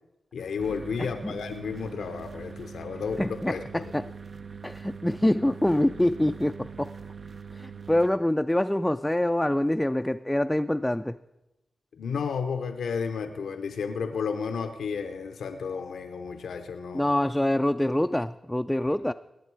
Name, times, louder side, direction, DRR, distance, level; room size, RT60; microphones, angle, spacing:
voice 1, 0.3-3.9 11.9-17.1, left 5 dB, 85° left, 7 dB, 0.6 m, -32 dB
sound 1, 0.6-8.1, right 5 dB, 60° right, 0.6 m, -42 dB
voice 2, 1.0-1.3 3.2-4.0 4.6-6.9 7.5-11.2 16.9-19.1, left 1 dB, 10° left, 7 dB, 0.3 m, -25 dB
18.5 x 8.2 x 4.7 m, 0.95 s
cardioid pair, 50°, 0 cm